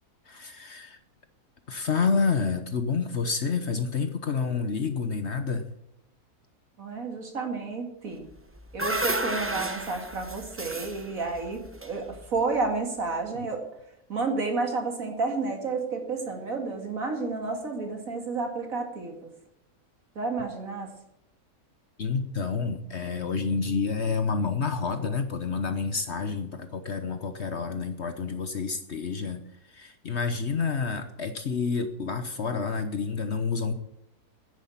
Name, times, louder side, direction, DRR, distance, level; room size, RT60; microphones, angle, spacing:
voice 1, 0.3-1.0 1.7-5.6 22.0-29.4 29.7-33.7, left 5 dB, 50° left, 9 dB, 1.1 m, -29 dB
voice 2, 6.8-8.3 8.7-13.6 14.1-19.3 20.2-20.9, right 3 dB, 60° right, 4 dB, 2.6 m, -31 dB
sound 1, 8.3-12.6, right 1 dB, 10° right, 0.7 m, -33 dB
10.0 x 9.9 x 8.5 m, 0.80 s
omnidirectional pair, 1.7 m